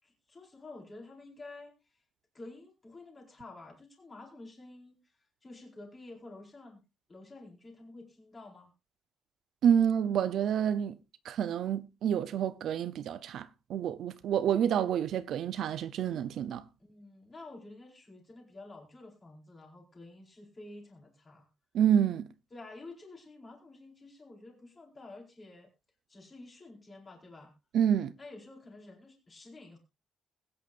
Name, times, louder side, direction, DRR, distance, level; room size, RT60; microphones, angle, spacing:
voice 1, 0.0-2.0 2.3-5.0 5.4-6.8 7.1-8.7 16.8-21.5 22.5-25.7 26.1-27.5 28.2-29.8, left 2 dB, 20° left, 4.4 m, -50 dB
voice 2, 9.6-10.9 11.2-16.6 21.7-22.3 27.7-28.1, right 9 dB, 65° right, 0.7 m, -28 dB
21.0 x 9.6 x 2.5 m
cardioid pair, 175°, 0 cm